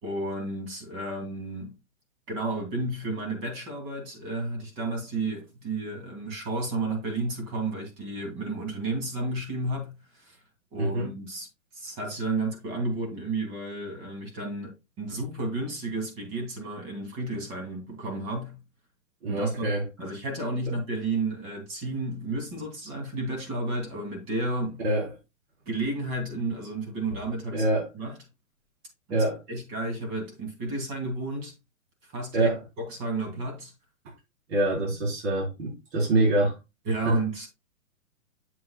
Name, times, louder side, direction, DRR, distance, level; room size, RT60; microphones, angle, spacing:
voice 1, 0.0-1.8 2.3-10.4 10.7-11.5 11.7-18.6 19.3-24.8 25.7-27.7 27.9-28.2 29.1-31.5 32.1-33.7 36.8-37.5, right 2 dB, 30° right, 3.0 m, -32 dB
voice 2, 10.8-11.1 19.2-19.8 24.8-25.1 27.5-27.9 29.1-29.4 32.3-32.6 34.5-36.6 37.0-37.2, right 2 dB, 50° right, 4.3 m, -25 dB
7.9 x 7.5 x 2.4 m
hypercardioid pair, 135°, 41 cm